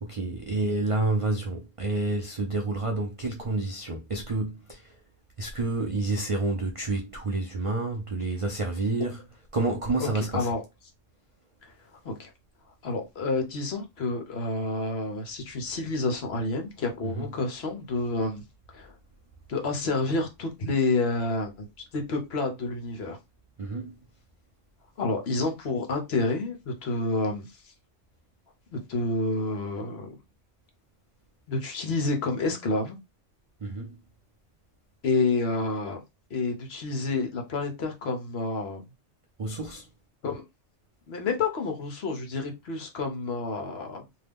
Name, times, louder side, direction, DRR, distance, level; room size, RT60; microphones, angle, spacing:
voice 1, 0.0-4.9 5.4-9.2 9.5-10.5 17.0-17.3 23.6-24.0 33.6-34.0 39.4-39.9, right 2 dB, 60° right, 0.3 m, -29 dB
voice 2, 10.0-10.6 12.0-12.3 12.8-18.4 18.7-18.9 19.5-21.6 21.9-23.2 25.0-27.5 28.7-30.1 31.5-32.9 35.0-36.0 36.3-38.8 40.2-40.4 41.1-44.0, left 3 dB, 60° left, 1.0 m, -29 dB
2.8 x 2.2 x 3.4 m
omnidirectional pair, 1.3 m